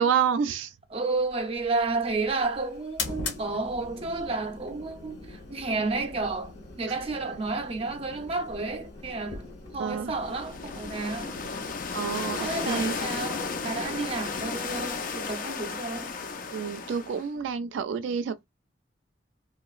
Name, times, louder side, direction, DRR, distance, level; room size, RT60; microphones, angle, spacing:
voice 1, 0.0-0.7 9.8-10.1 11.9-13.0 16.5-18.5, right 7 dB, 80° right, 0.3 m, -28 dB
voice 2, 0.9-9.5 9.7-11.4 12.1-16.2, right 3 dB, 30° right, 0.6 m, -31 dB
sound 1, 1.1-16.4, left 3 dB, 65° left, 1.3 m, -43 dB
sound 2, 10.2-17.3, left 4 dB, 45° left, 0.5 m, -34 dB
3.0 x 2.8 x 2.4 m
head